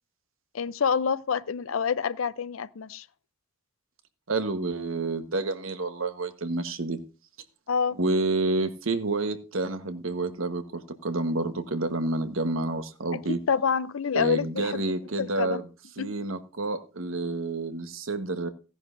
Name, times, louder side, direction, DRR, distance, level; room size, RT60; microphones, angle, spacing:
voice 1, 0.5-3.1 7.7-8.0 13.5-14.8 15.2-15.6 16.0-16.1, left 6 dB, 85° left, 0.5 m, -27 dB
voice 2, 4.3-7.0 8.0-13.4 14.1-15.7 16.0-18.5, right 2 dB, 85° right, 1.3 m, -29 dB
15.5 x 10.5 x 2.6 m
head